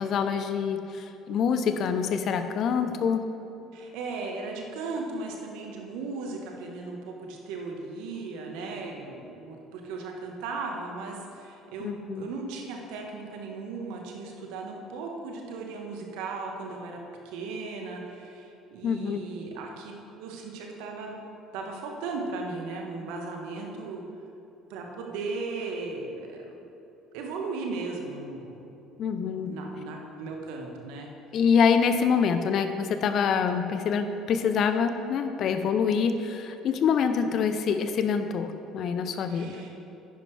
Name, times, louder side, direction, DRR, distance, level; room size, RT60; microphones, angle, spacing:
voice 1, 0.0-3.2 11.8-12.2 18.8-19.2 29.0-29.5 31.3-39.6, left 6 dB, 55° left, 8 dB, 0.7 m, -25 dB
voice 2, 2.7-3.0 3.7-17.0 17.2-19.9 20.2-21.2 21.5-24.0 24.7-26.6 27.1-28.6 29.3-31.1 37.2-37.4 39.3-39.7, right 3 dB, 70° right, 1 dB, 1.3 m, -37 dB
10.0 x 10.0 x 3.3 m, 2.9 s
hypercardioid pair, 60°, 0 cm